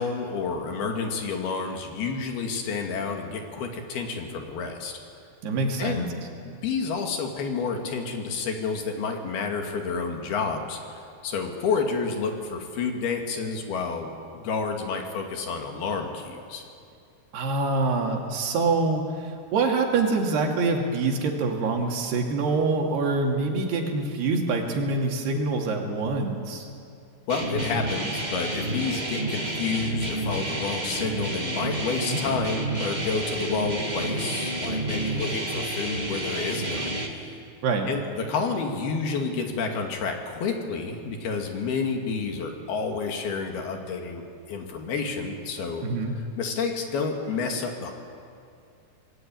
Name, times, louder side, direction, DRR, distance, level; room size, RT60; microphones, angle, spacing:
voice 1, 0.0-4.9 5.8-6.1 6.4-16.7 27.3-37.4 37.9-44.2 44.5-45.8 46.4-47.9, left 4 dB, 70° left, 3 dB, 4.2 m, -30 dB
voice 2, 5.4-6.1 17.3-26.7 32.1-32.2 37.6-37.9 45.8-46.1, right 3 dB, 85° right, 1 dB, 4.5 m, -25 dB
sound 1, 27.3-37.1, right 1 dB, 15° right, 1.4 m, -30 dB
26.0 x 20.5 x 9.2 m, 2.4 s
omnidirectional pair, 4.6 m